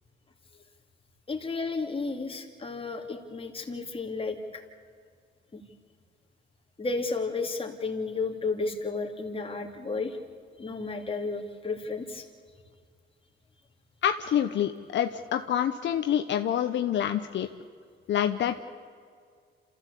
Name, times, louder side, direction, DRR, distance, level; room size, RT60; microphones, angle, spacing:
voice 1, 1.3-4.6 5.5-5.6 6.8-10.2 10.6-12.3, left 3 dB, 25° left, 2 dB, 2.9 m, -32 dB
voice 2, 14.0-17.5 18.1-18.6, left 10 dB, 65° left, 7 dB, 0.9 m, -27 dB
28.0 x 15.0 x 8.4 m, 2.1 s
cardioid pair, 90°, 20 cm